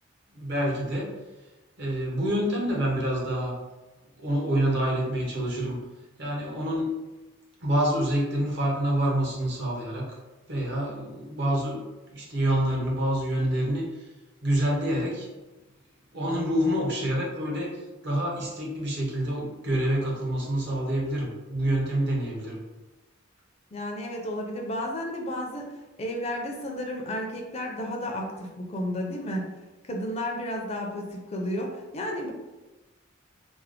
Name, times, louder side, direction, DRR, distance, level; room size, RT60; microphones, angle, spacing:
voice 1, 0.3-1.1 1.8-3.5 4.2-5.8 6.2-6.9 7.6-10.1 10.5-11.8 12.1-14.1 14.4-15.3 16.1-22.6, right 1 dB, 55° right, -3 dB, 0.9 m, -27 dB
voice 2, 23.7-25.6 26.0-29.5 29.9-32.3, left 1 dB, 30° left, 1 dB, 0.4 m, -32 dB
3.3 x 2.0 x 3.5 m, 1.1 s
head